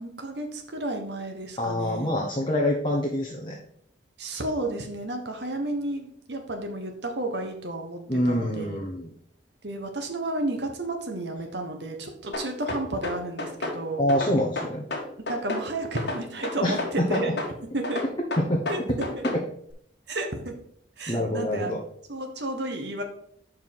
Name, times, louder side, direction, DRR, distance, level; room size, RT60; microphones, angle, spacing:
voice 1, 0.0-2.1 4.2-8.8 9.6-14.0 15.3-17.4 17.7-18.0 18.7-19.2 20.1-20.6 21.0-21.7 22.1-23.0, right 2 dB, 60° right, 4 dB, 1.2 m, -32 dB
voice 2, 1.6-3.6 8.1-9.1 14.0-14.9 16.6-16.8 17.1-17.2 18.5-18.6 21.1-21.8, left 1 dB, 25° left, -1 dB, 0.8 m, -26 dB
sound 1, 12.3-13.8 14.1-15.7 16.0-17.5 17.8-19.4, left 2 dB, 60° left, 1.5 m, -31 dB
5.5 x 4.7 x 6.0 m, 0.69 s
head